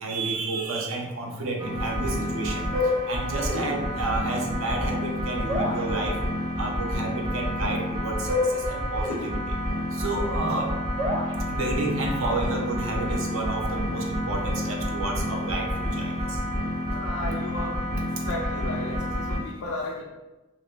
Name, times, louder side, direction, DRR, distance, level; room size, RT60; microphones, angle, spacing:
voice 1, 0.0-2.6 3.1-6.1 6.6-8.3 8.5-9.4 9.9-10.7 11.5-16.4, right 2 dB, 70° right, 0 dB, 0.7 m, -30 dB
sound 1, 1.6-19.4, left 1 dB, 20° right, 0.7 m, -28 dB
voice 2, 16.9-17.9 18.2-20.0, left 2 dB, 85° left, -2 dB, 0.4 m, -35 dB
2.9 x 2.7 x 3.3 m, 1.1 s
head